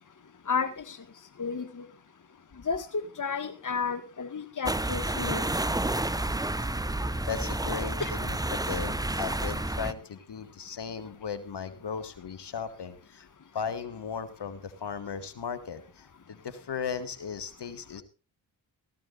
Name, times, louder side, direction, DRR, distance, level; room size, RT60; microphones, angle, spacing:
voice 1, 0.5-1.0 1.4-1.9 2.7-5.4 8.0-8.1, left 5 dB, 40° left, 10 dB, 1.8 m, -32 dB
sound 1, 4.7-9.9, right 1 dB, 10° right, 0.9 m, -30 dB
voice 2, 7.3-13.3 13.5-18.0, left 6 dB, 60° left, 11 dB, 1.9 m, -37 dB
17.5 x 15.0 x 2.6 m, 0.31 s
supercardioid pair, 40°, 47 cm